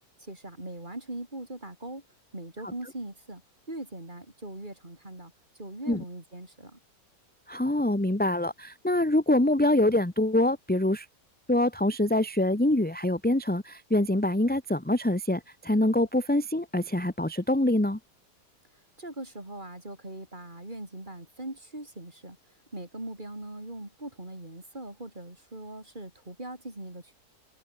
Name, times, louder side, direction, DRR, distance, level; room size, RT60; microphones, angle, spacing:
voice 1, 0.2-2.0 2.3-3.4 3.7-5.3 5.6-6.8 19.0-22.4 22.7-27.1, right 1 dB, 25° right, 5.0 m, -40 dB
voice 2, 7.5-11.1 11.5-18.0, left 1 dB, 5° left, 1.4 m, -25 dB
omnidirectional pair, 1.8 m